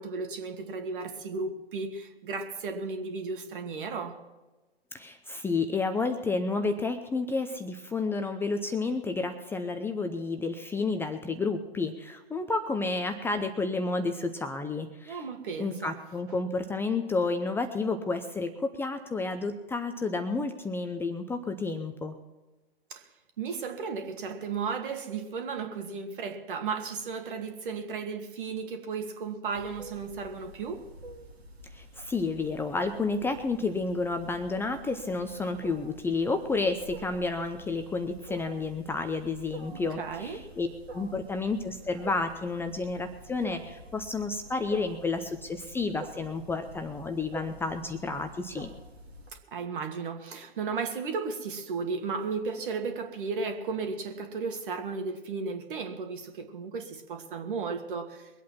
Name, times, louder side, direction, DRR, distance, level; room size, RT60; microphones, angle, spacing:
voice 1, 0.0-4.2 15.1-16.0 22.9-23.1 23.4-30.9 39.7-40.4 49.3-58.3, right 4 dB, 55° right, 2.6 m, -34 dB
voice 2, 4.9-15.2 15.6-22.1 31.7-40.7 40.9-48.7, left 3 dB, 5° left, 0.7 m, -31 dB
Wild animals, 29.5-49.3, right 2 dB, 80° right, 2.7 m, -47 dB
22.5 x 8.4 x 5.9 m
figure-of-eight pair, 120°, 31 cm